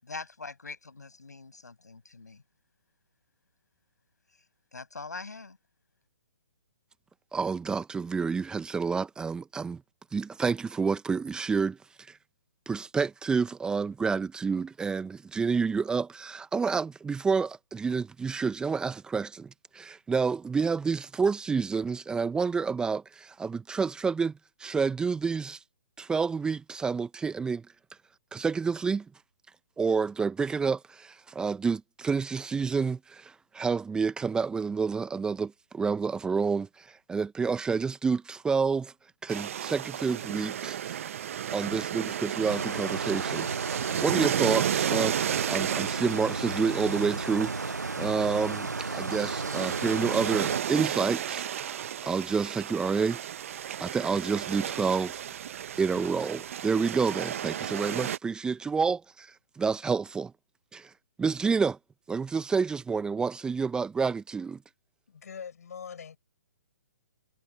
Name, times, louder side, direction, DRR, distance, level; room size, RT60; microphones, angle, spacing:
voice 1, 0.0-2.4 4.7-5.6, left 4 dB, 80° left, 6.7 m, -43 dB
voice 2, 7.3-9.8 10.1-11.8 12.7-24.3 24.6-25.6 26.0-27.6 28.3-29.0 29.8-38.9 39.2-41.0 41.5-53.2 53.8-55.2 55.8-60.3 60.7-60.9 61.2-61.8 62.1-64.6, right 5 dB, 10° right, 1.1 m, -29 dB
sound 1, 39.3-58.2, right 10 dB, 55° right, 0.9 m, -33 dB
sound 2, 42.5-50.6, right 3 dB, 90° right, 0.6 m, -34 dB
voice 3, 65.1-66.2, left 7 dB, 65° left, 7.3 m, -42 dB
figure-of-eight pair, 130°, 9 cm